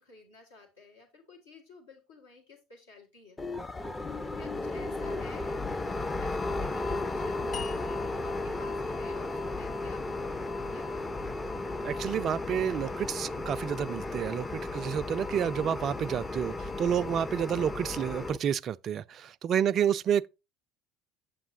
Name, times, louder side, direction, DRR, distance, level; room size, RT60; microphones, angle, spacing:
voice 1, 0.0-4.0 4.2-11.4 19.6-19.7, left 4 dB, 75° left, 1.6 m, -53 dB
sound 1, 3.4-18.4, left 2 dB, 15° left, 0.6 m, -34 dB
sound 2, 7.5-10.7, left 8 dB, 45° left, 1.0 m, -47 dB
voice 2, 11.8-20.3, right 8 dB, 40° right, 0.3 m, -29 dB
8.1 x 7.2 x 2.6 m
figure-of-eight pair, 65°, 0 cm